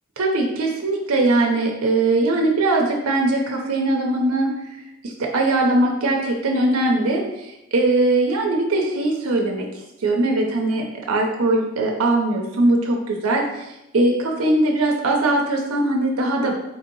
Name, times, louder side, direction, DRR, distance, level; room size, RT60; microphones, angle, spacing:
voice 1, 0.2-4.5 5.0-16.6, right 2 dB, 90° right, 0 dB, 0.6 m, -21 dB
4.2 x 2.7 x 3.8 m, 0.91 s
head